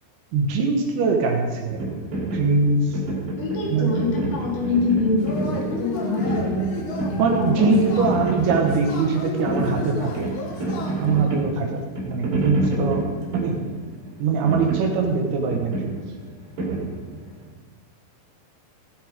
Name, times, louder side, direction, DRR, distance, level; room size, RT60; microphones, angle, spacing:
voice 1, 0.3-1.8 2.3-3.0 3.7-4.1 7.2-10.3 11.0-13.0 13.3-13.6 14.2-16.0, right 4 dB, 70° right, 2 dB, 2.8 m, -22 dB
sound 1, 1.7-17.4, right 2 dB, 45° right, 3.9 m, -29 dB
voice 2, 3.4-8.2, left 3 dB, 40° left, -3 dB, 2.9 m, -25 dB
Yell / Cheering, 5.2-11.3, left 2 dB, 75° left, 1.8 m, -33 dB
16.5 x 6.5 x 5.2 m, 1.4 s
omnidirectional pair, 5.6 m